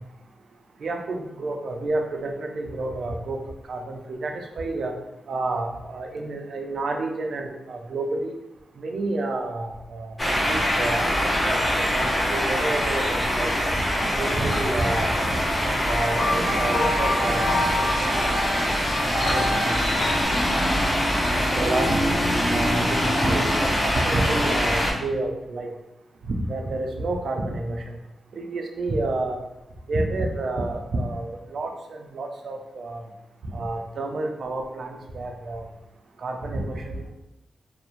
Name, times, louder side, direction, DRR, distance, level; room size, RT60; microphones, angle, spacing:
voice 1, 0.8-3.4 3.7-4.9 5.3-8.3 8.8-13.7 14.2-15.1 15.6-18.1 19.0-20.0 21.3-22.0 22.5-25.7 26.5-28.0 28.3-29.4 29.9-33.0 33.4-35.6 36.2-37.1, right 2 dB, 60° right, 3 dB, 0.3 m, -29 dB
sound 1, 10.2-24.9, equal, 10° left, 0.5 m, -24 dB
sound 2, 15.9-20.2, left 1 dB, 85° left, 0.7 m, -27 dB
2.4 x 2.0 x 2.9 m, 0.94 s
wide cardioid pair, 115°, 0 cm